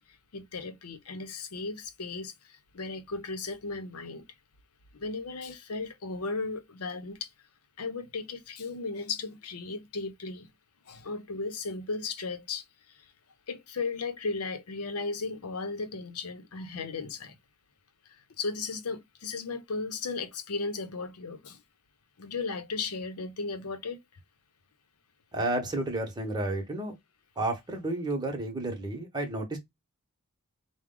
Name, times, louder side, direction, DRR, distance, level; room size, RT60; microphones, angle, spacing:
voice 1, 0.3-4.2 4.9-7.3 7.8-10.5 10.9-13.1 13.5-17.4 18.1-21.6 22.2-24.0, left 4 dB, 80° left, 0.7 m, -36 dB
voice 2, 25.3-26.9 27.4-29.6, right 2 dB, 20° right, 1.0 m, -31 dB
4.6 x 2.2 x 3.7 m
head